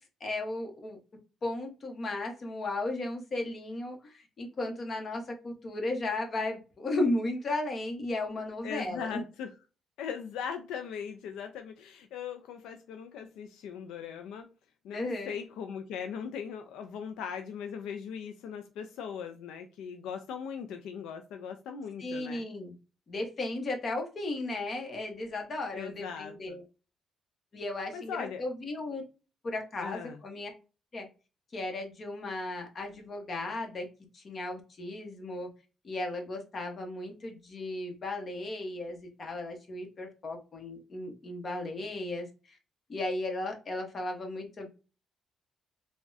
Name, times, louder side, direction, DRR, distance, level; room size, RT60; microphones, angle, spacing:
voice 1, 0.2-1.0 1.4-9.2 14.9-15.3 22.0-22.7 23.1-26.6 27.5-29.0 29.4-30.5 30.9-31.1 31.5-33.9 34.1-35.5 35.8-42.6 42.9-44.7, left 2 dB, 45° left, 3 dB, 0.9 m, -35 dB
voice 2, 8.6-9.5 10.0-14.5 14.8-22.4 25.7-26.6 27.9-28.4 29.8-30.2, left 7 dB, 90° left, 6 dB, 0.3 m, -39 dB
3.4 x 2.1 x 2.5 m, 0.33 s
cardioid pair, 90°, 0 cm